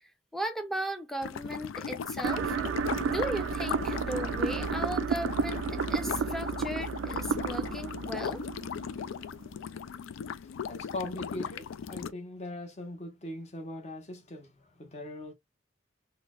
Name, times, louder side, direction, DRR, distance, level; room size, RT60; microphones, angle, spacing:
voice 1, 0.3-2.6 3.0-8.4, right 1 dB, ahead, 0.5 m, -36 dB
sound 1, 1.2-12.1, left 7 dB, 85° left, 0.3 m, -37 dB
sound 2, 2.2-9.3, right 6 dB, 80° right, 0.3 m, -32 dB
voice 2, 10.7-14.5 14.8-15.3, left 1 dB, 35° left, 0.9 m, -40 dB
4.1 x 2.1 x 2.3 m
head